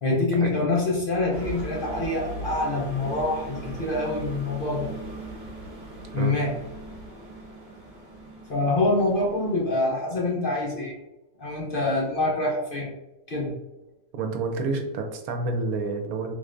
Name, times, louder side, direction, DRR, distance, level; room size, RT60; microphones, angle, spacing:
voice 1, 0.0-4.9 6.1-6.5 8.5-11.0 11.4-12.9 13.3-13.5, left 2 dB, 45° left, -3 dB, 0.8 m, -25 dB
sound 1, 1.3-9.9, right 1 dB, 60° right, 1.3 m, -39 dB
voice 2, 14.1-16.3, right 3 dB, 80° right, 4 dB, 1.1 m, -29 dB
3.6 x 3.2 x 2.5 m, 0.96 s
omnidirectional pair, 1.5 m